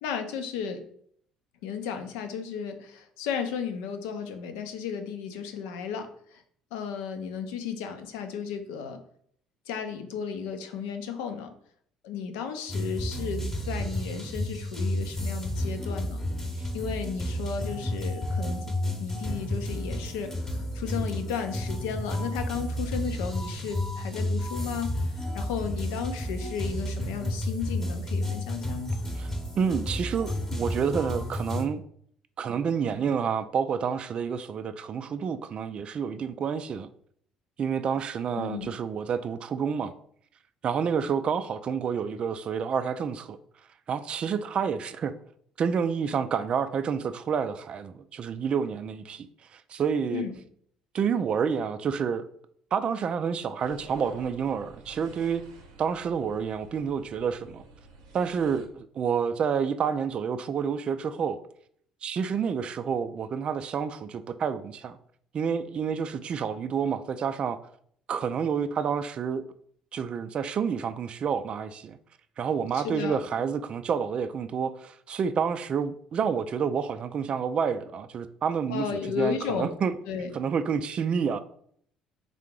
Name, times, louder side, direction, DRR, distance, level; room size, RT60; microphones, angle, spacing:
voice 1, 0.0-0.8 1.6-6.4 6.7-9.0 9.7-11.5 12.0-16.2 16.7-28.9 38.4-38.7 50.1-50.3 72.7-73.2 78.7-79.7 80.1-80.3, left 7 dB, 65° left, 0.6 m, -34 dB
sound 1, 12.7-31.7, left 1 dB, 15° left, 0.9 m, -31 dB
voice 2, 29.6-31.8 32.4-36.9 37.6-39.9 40.6-43.4 43.9-45.1 45.6-50.2 50.9-52.3 52.7-55.4 55.8-57.6 58.1-61.4 62.0-65.0 65.3-67.6 68.1-69.5 69.9-72.0 72.4-79.9 80.3-81.4, right 6 dB, 40° right, 0.3 m, -29 dB
sound 2, 53.6-58.7, right 3 dB, 70° right, 0.7 m, -49 dB
3.7 x 3.7 x 3.6 m
figure-of-eight pair, 50°, 3 cm